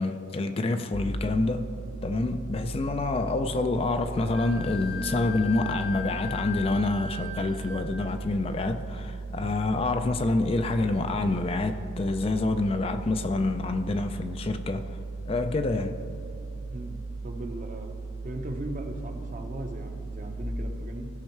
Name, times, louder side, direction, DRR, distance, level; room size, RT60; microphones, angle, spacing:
voice 1, 0.0-1.8 2.0-14.9 15.3-16.0, left 2 dB, 30° left, 8 dB, 0.3 m, -27 dB
sound 1, 0.9-20.4, right 3 dB, 65° left, 1.1 m, -37 dB
Wind instrument woodwind instrument, 4.3-8.0, left 6 dB, 85° right, 1.7 m, -39 dB
voice 2, 16.7-17.9 18.2-21.1, right 1 dB, 40° right, 5 dB, 0.8 m, -38 dB
15.0 x 5.5 x 4.5 m, 2.6 s
head